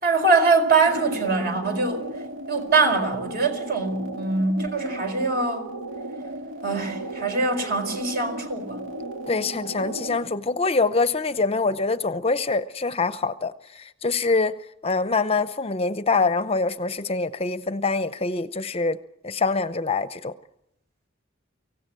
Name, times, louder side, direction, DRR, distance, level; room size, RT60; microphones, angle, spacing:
voice 1, 0.0-2.0 2.5-5.7 6.6-8.8, right 3 dB, 55° right, 4.6 m, -23 dB
sound 1, 0.7-10.3, right 1 dB, 80° right, 2.7 m, -35 dB
voice 2, 9.3-19.0 19.2-20.3, left 3 dB, 30° left, 0.7 m, -25 dB
24.5 x 16.5 x 7.6 m
head